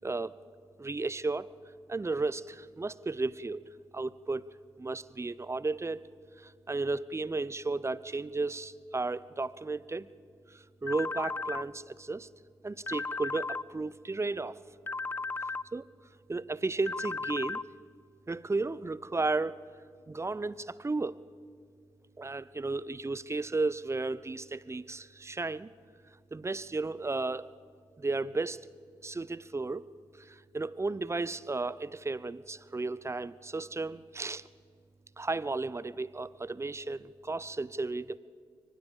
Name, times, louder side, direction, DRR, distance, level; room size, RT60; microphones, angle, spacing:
voice 1, 0.0-0.3 0.8-1.5 1.9-3.6 3.9-4.5 4.8-6.1 6.4-10.1 10.5-12.3 12.6-14.6 15.7-15.9 16.3-17.6 18.3-19.6 20.1-21.2 22.2-25.7 26.3-27.5 28.0-28.6 29.0-29.8 30.1-34.5 35.2-38.2, right 3 dB, 25° right, 18 dB, 0.8 m, -34 dB
sound 1, 10.9-11.6 12.9-13.6 14.9-15.6 16.9-17.6, left 3 dB, 20° left, 0.6 m, -35 dB
23.5 x 19.5 x 7.2 m, 2.1 s
supercardioid pair, 45°, 10 cm